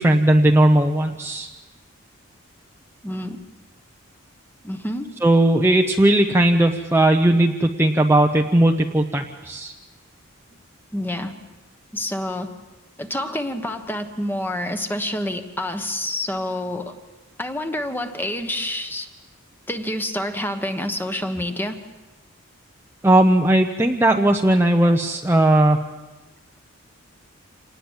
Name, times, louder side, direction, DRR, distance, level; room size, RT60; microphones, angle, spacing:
voice 1, 0.0-1.5 5.2-9.7 23.0-25.8, right 1 dB, 10° right, 3 dB, 0.8 m, -17 dB
voice 2, 3.0-3.4 4.6-5.1 10.9-11.3 11.9-12.5 13.0-16.9 17.4-19.1 19.7-21.8 24.8-24.9, left 1 dB, 10° left, 7 dB, 1.3 m, -28 dB
27.0 x 19.5 x 7.4 m, 1.1 s
head